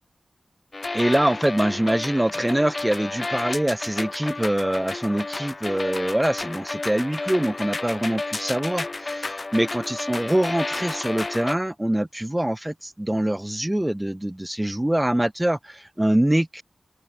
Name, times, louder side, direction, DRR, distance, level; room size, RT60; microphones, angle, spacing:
sound 1, 0.7-11.6, left 3 dB, 45° left, 0.5 m, -31 dB
voice 1, 0.9-16.6, right 1 dB, 15° right, 0.3 m, -24 dB
open air
cardioid pair, 50°, 0 cm